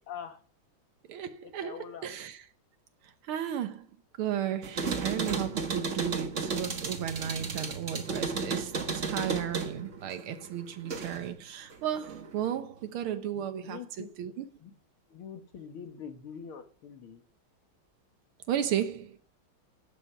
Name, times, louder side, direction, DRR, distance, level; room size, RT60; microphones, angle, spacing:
voice 1, 0.1-0.4 1.4-2.1 13.3-14.1 14.6-14.7 15.1-17.2, left 7 dB, 85° left, 2.4 m, -44 dB
voice 2, 1.1-1.8 2.0-2.4 3.0-3.9 4.2-14.5 18.5-19.2, right 10 dB, 85° right, 1.8 m, -34 dB
sound 1, 4.6-11.3 11.7-12.5, right 4 dB, 40° right, 1.5 m, -34 dB
11.0 x 8.4 x 5.7 m
omnidirectional pair, 2.3 m